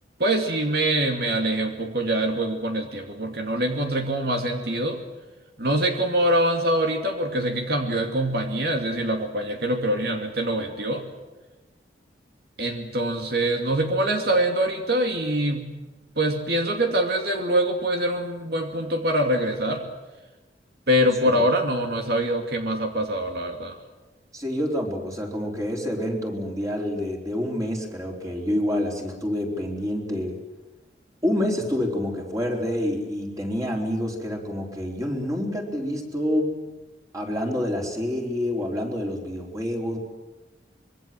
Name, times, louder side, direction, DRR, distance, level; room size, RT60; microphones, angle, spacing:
voice 1, 0.2-5.0 5.6-11.1 12.6-15.8 16.2-19.9 20.9-23.8, right 1 dB, 60° right, 4 dB, 2.6 m, -24 dB
voice 2, 24.3-30.4 31.2-36.6 37.1-40.0, left 1 dB, 20° right, 0 dB, 4.3 m, -27 dB
25.5 x 23.0 x 7.8 m, 1.1 s
head